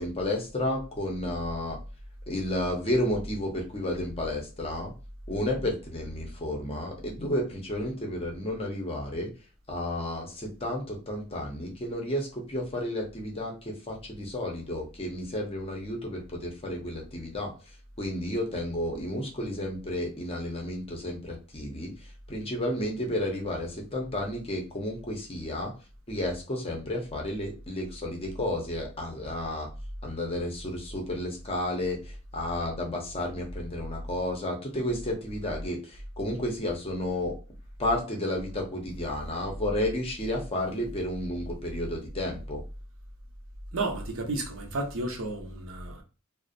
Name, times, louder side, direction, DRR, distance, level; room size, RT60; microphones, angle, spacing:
voice 1, 0.0-1.8 2.3-4.9 5.3-9.3 9.7-17.5 18.0-21.9 22.3-25.7 26.1-29.7 30.0-32.0 32.3-37.3 37.8-42.6, left 1 dB, 25° left, 0.6 m, -32 dB
voice 2, 43.7-46.0, right 2 dB, 65° right, 0.7 m, -32 dB
2.4 x 2.0 x 2.5 m
head